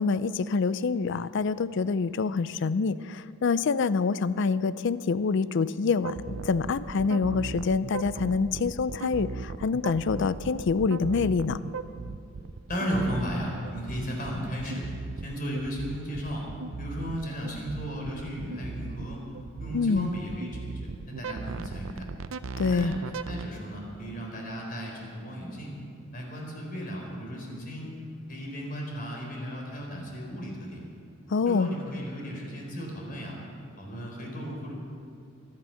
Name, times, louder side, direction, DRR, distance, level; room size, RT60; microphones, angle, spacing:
voice 1, 0.0-6.1 6.5-11.6 19.7-20.1 22.6-22.9 31.3-31.7, left 4 dB, 60° left, 16 dB, 0.4 m, -26 dB
sound 1, 6.0-23.5, right 4 dB, 75° right, 0.6 m, -37 dB
voice 2, 12.7-14.9 15.2-16.5 16.8-19.2 19.6-22.1 22.7-23.0 23.3-25.8 26.1-27.9 28.3-30.8 31.5-33.4 33.8-34.7, equal, 45° left, -1 dB, 4.1 m, -35 dB
24.5 x 9.7 x 5.8 m, 2.4 s
head